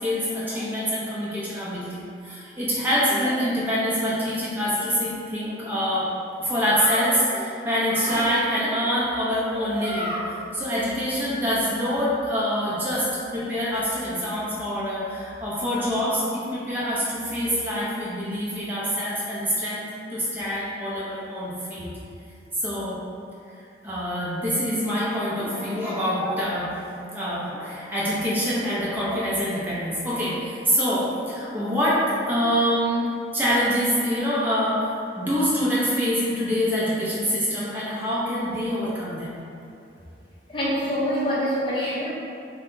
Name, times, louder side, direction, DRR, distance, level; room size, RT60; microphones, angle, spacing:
voice 1, 0.0-6.1 6.4-10.3 10.5-13.1 13.3-21.9 22.6-23.0 23.8-26.7 27.1-33.0 33.3-39.3, equal, 10° right, -8 dB, 0.7 m, -25 dB
voice 2, 40.5-42.1, equal, 25° left, -7 dB, 0.7 m, -25 dB
5.5 x 2.2 x 2.6 m, 2.6 s
head